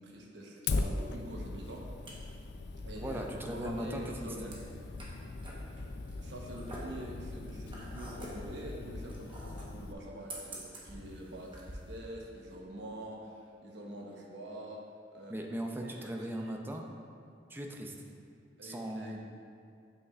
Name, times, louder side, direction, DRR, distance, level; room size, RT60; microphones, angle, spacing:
voice 1, 0.0-1.9 2.8-3.2 3.5-4.6 6.2-15.4 15.8-16.7 18.6-19.2, right 1 dB, 80° right, -2 dB, 1.0 m, -45 dB
Fire, 0.7-9.9, left 3 dB, 65° left, 0.4 m, -40 dB
sound 1, 1.7-12.0, right 1 dB, 30° right, 1.0 m, -49 dB
voice 2, 2.9-4.3 15.3-16.9 17.5-17.9 18.6-19.2, right 1 dB, 10° right, 1 dB, 0.5 m, -38 dB
7.9 x 6.4 x 2.4 m, 2.3 s
head